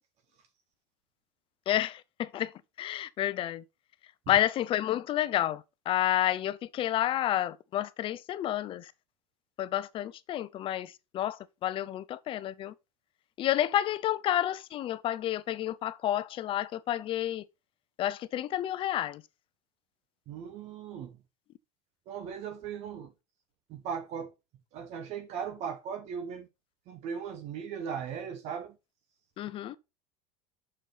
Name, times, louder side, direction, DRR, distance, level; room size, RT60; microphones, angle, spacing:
voice 1, 1.7-2.5 2.8-3.6 4.3-8.9 9.6-12.7 13.4-17.4 18.0-19.2 29.4-29.8, left 12 dB, 40° left, 0.6 m, -30 dB
voice 2, 20.3-21.2 22.1-23.1 23.7-24.3 24.7-26.5 26.9-28.8, right 7 dB, 55° right, 1.5 m, -38 dB
6.5 x 6.4 x 4.0 m
supercardioid pair, 120°, 13 cm